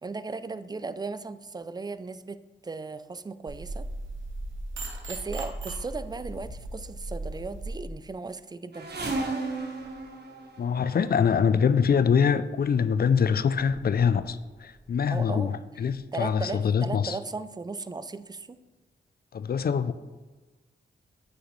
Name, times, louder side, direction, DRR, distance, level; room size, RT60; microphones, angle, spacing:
voice 1, 0.0-3.9 5.1-9.3 15.1-18.6, right 3 dB, 20° right, 0.4 m, -37 dB
sound 1, 3.5-7.8, right 2 dB, 75° right, 1.2 m, -37 dB
sound 2, 8.7-11.2 12.2-12.4 13.2-13.3 13.5-14.4 14.7-15.2 15.9-16.0 16.3-16.4, right 3 dB, 55° right, 1.4 m, -35 dB
voice 2, 10.6-17.2 19.3-19.9, left 6 dB, 50° left, 0.4 m, -24 dB
8.2 x 6.3 x 3.2 m
cardioid pair, 60°, 20 cm